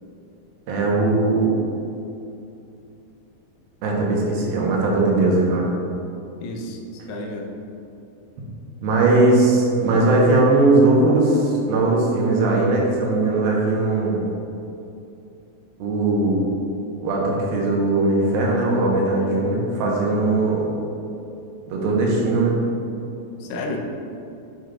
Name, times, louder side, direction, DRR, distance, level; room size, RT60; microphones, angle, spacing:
voice 1, 0.7-1.5 3.8-5.7 8.8-14.2 15.8-16.5 17.0-20.7 21.7-22.6, right 2 dB, 85° right, -3 dB, 2.9 m, -19 dB
voice 2, 6.4-6.8 7.1-7.5 23.4-23.8, left 2 dB, 75° left, 1 dB, 2.1 m, -31 dB
9.2 x 6.0 x 2.5 m, 2.7 s
omnidirectional pair, 4.3 m